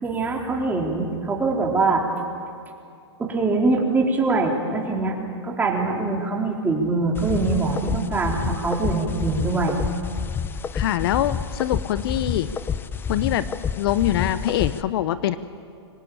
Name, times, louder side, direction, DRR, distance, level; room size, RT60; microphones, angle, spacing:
voice 1, 0.0-2.0 3.2-5.2 5.4-9.8, right 3 dB, 10° right, 0 dB, 4.0 m, -23 dB
sound 1, 7.2-14.8, left 7 dB, 15° left, 0.7 m, -29 dB
voice 2, 10.7-12.5 13.1-15.4, left 12 dB, 55° left, 14 dB, 0.9 m, -24 dB
24.5 x 19.0 x 8.8 m, 2.4 s
hypercardioid pair, 125°, 15 cm